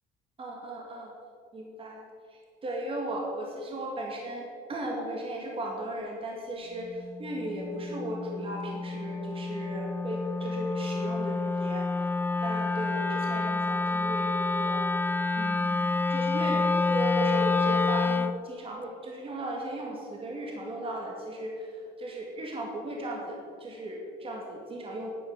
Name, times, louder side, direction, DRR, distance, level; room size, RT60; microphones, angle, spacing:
voice 1, 0.4-1.1 1.5-11.9 12.4-14.8 15.4-15.8 16.1-25.1, right 1 dB, 35° right, -1 dB, 2.1 m, -36 dB
Wind instrument woodwind instrument, 6.8-18.4, left 3 dB, 10° left, 0.3 m, -28 dB
9.8 x 9.3 x 7.3 m, 2.3 s
cardioid pair, 110°, 17 cm